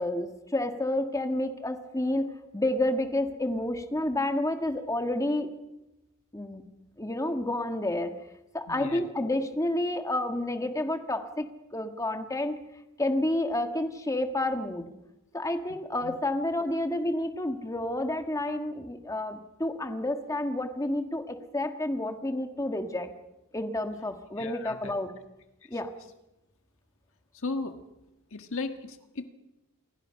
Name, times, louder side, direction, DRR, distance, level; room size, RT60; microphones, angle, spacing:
voice 1, 0.0-5.5 6.3-6.7 7.0-8.1 8.5-11.5 11.7-12.6 13.0-14.9 15.3-23.1 23.5-25.1 25.7-25.9, left 1 dB, 15° left, 6 dB, 1.6 m, -30 dB
voice 2, 8.7-9.1 16.0-16.2 24.4-24.9 27.4-27.7 28.3-29.3, left 3 dB, 60° left, 8 dB, 1.5 m, -35 dB
28.0 x 22.0 x 5.7 m, 0.95 s
head